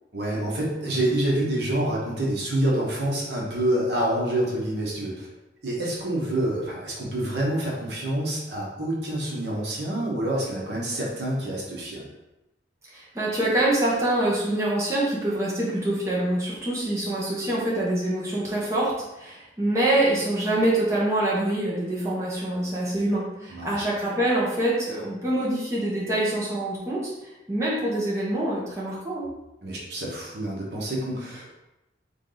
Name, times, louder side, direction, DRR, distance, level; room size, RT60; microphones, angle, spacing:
voice 1, 0.1-5.3 5.6-12.1 23.5-23.9 29.6-31.6, right 1 dB, 65° right, -4 dB, 1.2 m, -27 dB
voice 2, 12.9-27.1 27.5-29.3, right 1 dB, 15° right, -7 dB, 1.1 m, -25 dB
3.8 x 3.6 x 3.9 m, 0.95 s
head